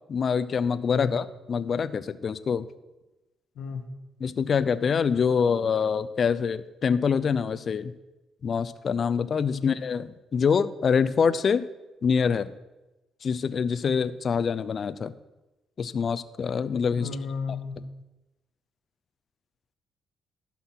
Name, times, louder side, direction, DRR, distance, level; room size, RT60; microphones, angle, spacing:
voice 1, 0.1-2.7 4.2-7.9 8.4-11.6 12.0-12.5 13.2-15.1 15.8-17.1, left 6 dB, 50° left, 14 dB, 0.5 m, -25 dB
voice 2, 16.9-17.8, left 5 dB, 80° left, 5 dB, 1.3 m, -33 dB
12.0 x 5.9 x 6.0 m, 1.0 s
cardioid pair, 90°, 0 cm